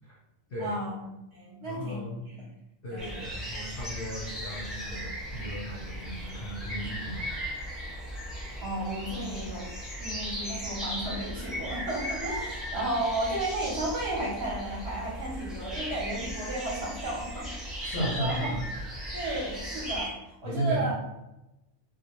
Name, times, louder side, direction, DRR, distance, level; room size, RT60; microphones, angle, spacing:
voice 1, 0.6-1.0 1.3-2.4 2.9-3.3 8.6-9.7 10.0-17.8 18.1-18.5 19.1-20.9, right 1 dB, 60° right, -4 dB, 0.8 m, -33 dB
voice 2, 1.6-2.2 2.8-7.3 17.8-18.6 20.4-20.9, right 1 dB, 60° left, -6 dB, 0.6 m, -35 dB
sound 1, 3.0-20.1, equal, ahead, 0.5 m, -37 dB
2.2 x 2.1 x 2.9 m, 0.93 s
omnidirectional pair, 1.4 m